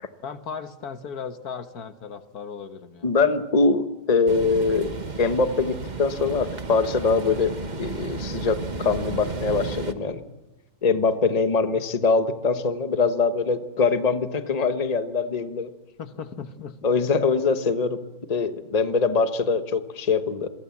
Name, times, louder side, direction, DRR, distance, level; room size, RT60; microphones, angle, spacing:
voice 1, 0.2-3.2 11.9-12.1 16.0-16.7, left 6 dB, 70° left, 9 dB, 1.7 m, -37 dB
voice 2, 3.0-4.9 5.2-7.5 7.8-10.2 10.8-15.7 16.8-18.0 18.3-20.5, left 4 dB, 25° left, 9 dB, 1.2 m, -23 dB
sound 1, 4.3-9.9, right 3 dB, 30° right, 1.3 m, -33 dB
27.0 x 23.0 x 7.3 m, 1.0 s
omnidirectional pair, 1.7 m